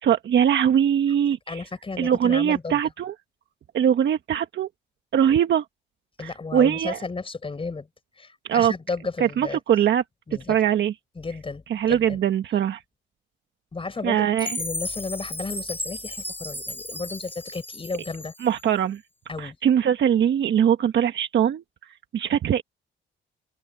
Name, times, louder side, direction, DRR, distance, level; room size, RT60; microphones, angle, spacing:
voice 1, 0.0-1.6 2.0-3.1 3.7-4.7 5.1-5.6 6.2-7.0 8.5-8.7 9.2-10.0 10.5-10.9 11.7-12.8 14.0-14.6 18.4-19.0 19.4-21.6 22.1-22.6, right 9 dB, 65° right, 1.5 m, -21 dB
voice 2, 1.5-2.8 6.2-7.9 8.2-9.6 10.3-10.6 11.2-12.2 13.7-14.3 14.6-18.3 19.3-19.6, left 4 dB, 25° left, 4.5 m, -33 dB
Chime, 14.4-18.6, left 1 dB, 10° left, 4.2 m, -34 dB
cardioid pair, 90°, 20 cm